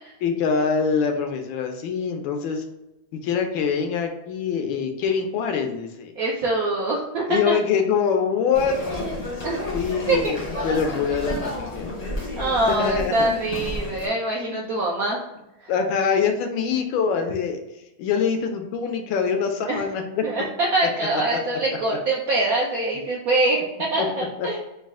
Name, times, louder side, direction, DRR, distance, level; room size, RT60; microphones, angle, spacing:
voice 1, 0.2-2.6 3.2-6.2 7.3-8.8 9.7-11.9 12.8-13.1 14.4-14.6 15.7-17.6 18.0-20.2 24.0-24.1 24.4-24.5, left 6 dB, 80° left, 5 dB, 1.3 m, -24 dB
voice 2, 6.2-7.6 9.4-9.6 10.1-10.3 12.4-15.2 15.6-15.7 19.7-19.8 20.2-24.6, right 2 dB, 70° right, -3 dB, 0.8 m, -24 dB
sound 1, 8.5-14.1, left 1 dB, 35° left, 0.6 m, -31 dB
4.0 x 2.3 x 3.5 m, 0.91 s
omnidirectional pair, 2.2 m